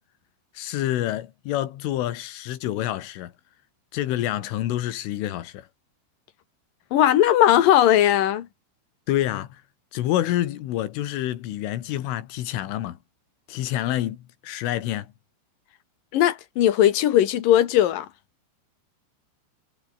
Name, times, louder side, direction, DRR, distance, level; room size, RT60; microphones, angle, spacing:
voice 1, 0.6-3.3 3.9-5.7 9.1-9.6 9.9-13.0 13.5-15.1, left 13 dB, 75° left, 4.3 m, -27 dB
voice 2, 6.9-8.5 16.1-18.1, left 12 dB, 60° left, 2.6 m, -18 dB
omnidirectional pair, 5.7 m